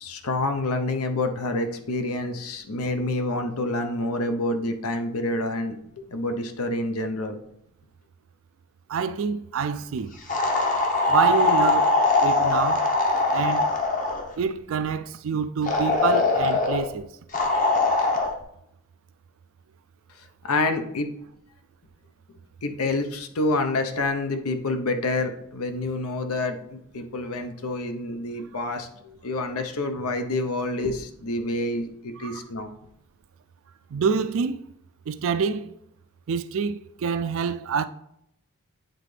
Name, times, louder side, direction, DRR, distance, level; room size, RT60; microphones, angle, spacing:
voice 1, 0.0-7.4 20.4-21.1 22.6-32.7, left 2 dB, 75° left, 0.7 m, -28 dB
voice 2, 8.9-10.1 11.1-11.9 12.2-12.8 13.3-13.7 14.4-17.1 32.2-32.4 33.9-34.6 35.1-35.7 36.3-37.8, right 6 dB, 60° right, 0.4 m, -27 dB
sound 1, 10.3-14.3 15.7-16.8 17.3-18.3, left 3 dB, 35° left, 0.8 m, -21 dB
9.0 x 3.9 x 3.3 m
head